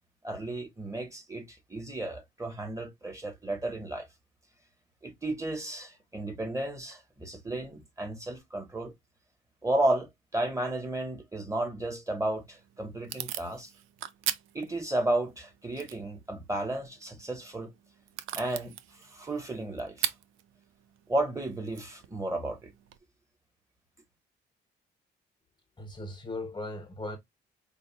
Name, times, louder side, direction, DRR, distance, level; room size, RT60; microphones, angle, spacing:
voice 1, 0.2-4.1 5.0-8.9 9.6-13.7 14.5-17.7 18.3-18.7 19.0-20.1 21.1-22.7, right 1 dB, 15° right, 1.3 m, -33 dB
Packing tape duct tape / Tearing, 12.2-23.0, right 12 dB, 85° right, 0.5 m, -41 dB
voice 2, 25.8-27.2, left 2 dB, 20° left, 0.8 m, -38 dB
5.0 x 2.4 x 2.3 m
cardioid pair, 90°, 20 cm